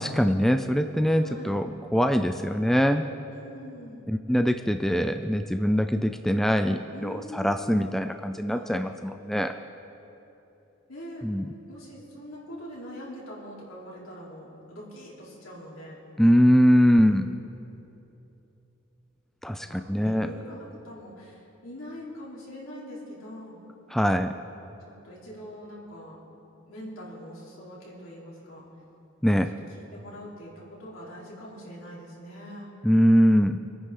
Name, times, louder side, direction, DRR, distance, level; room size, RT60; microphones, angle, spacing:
voice 1, 0.0-3.0 4.1-9.5 11.2-11.5 16.2-17.2 19.4-20.3 23.9-24.3 29.2-29.5 32.8-33.6, equal, ahead, 7 dB, 0.3 m, -22 dB
voice 2, 1.1-1.6 3.3-4.1 6.9-7.6 8.5-8.8 10.9-11.2 11.7-16.0 17.0-17.2 19.6-23.6 24.9-26.2 26.7-28.6 29.8-32.7, equal, 75° left, -5 dB, 3.8 m, -43 dB
25.0 x 9.8 x 3.8 m, 3.0 s
head